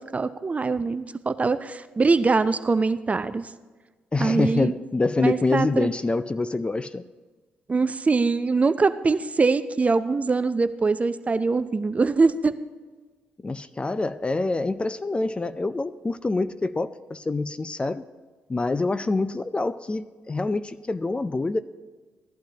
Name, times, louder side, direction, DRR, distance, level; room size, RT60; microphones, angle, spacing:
voice 1, 0.0-3.4 4.2-4.7 5.2-5.9 7.7-12.5, right 4 dB, 30° right, 13 dB, 0.5 m, -23 dB
voice 2, 4.1-7.0 13.4-18.0 18.5-21.6, left 3 dB, 25° left, 13 dB, 0.5 m, -26 dB
16.5 x 11.5 x 2.9 m, 1.3 s
hypercardioid pair, 50°, 4 cm